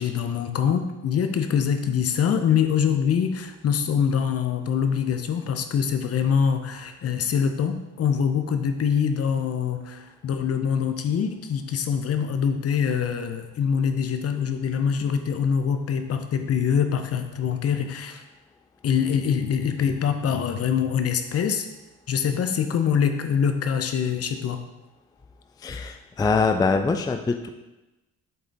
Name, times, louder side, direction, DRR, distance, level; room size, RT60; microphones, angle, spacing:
voice 1, 0.0-18.2 18.8-21.7 22.1-24.6, left 7 dB, 50° left, 7 dB, 0.7 m, -24 dB
voice 2, 25.6-27.5, left 4 dB, 15° left, 6 dB, 0.3 m, -23 dB
8.0 x 3.7 x 3.5 m, 1.0 s
cardioid pair, 90°, 30 cm